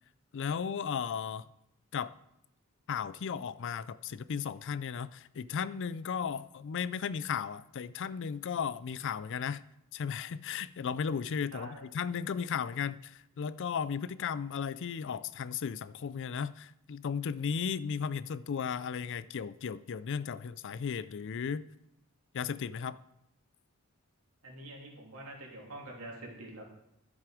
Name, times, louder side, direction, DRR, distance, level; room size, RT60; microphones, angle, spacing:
voice 1, 0.3-1.5 1.9-2.1 2.9-9.6 9.9-21.6 22.3-23.0, left 7 dB, 55° left, 17 dB, 0.4 m, -35 dB
voice 2, 11.5-11.9 24.4-26.7, right 1 dB, 75° right, -1 dB, 3.0 m, -46 dB
10.5 x 7.6 x 4.9 m, 0.79 s
head